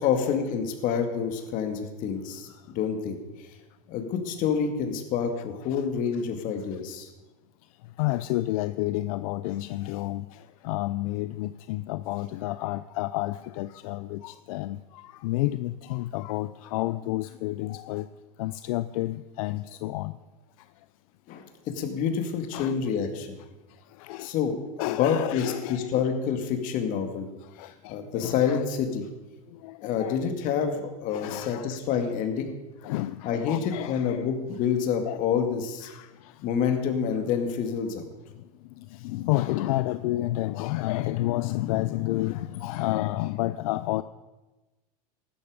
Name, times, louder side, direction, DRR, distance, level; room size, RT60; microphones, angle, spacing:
voice 1, 0.0-3.2 3.9-7.1 21.3-23.4 24.2-27.3 27.6-29.1 29.8-32.5 33.2-35.9 36.4-38.1, left 7 dB, 45° left, 6 dB, 2.3 m, -28 dB
voice 2, 8.0-18.1 18.4-20.2 22.5-22.7 23.7-24.3 24.8-26.0 27.4-28.6 29.5-30.3 31.1-31.8 32.8-34.3 35.0-35.2 35.8-36.4 38.4-44.0, left 17 dB, 65° left, 14 dB, 0.5 m, -31 dB
15.5 x 12.5 x 5.1 m, 1.1 s
supercardioid pair, 135°, 19 cm